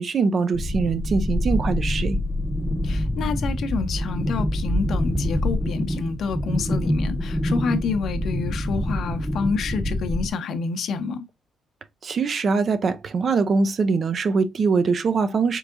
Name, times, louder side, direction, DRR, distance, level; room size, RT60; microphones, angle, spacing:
voice 1, 0.0-2.2 12.0-15.6, right 4 dB, 50° right, 0.5 m, -22 dB
sound 1, 0.5-10.3, left 1 dB, 5° left, 0.5 m, -25 dB
voice 2, 2.8-11.3, left 5 dB, 65° left, 0.7 m, -28 dB
4.6 x 3.4 x 2.5 m
cardioid pair, 90°, 0 cm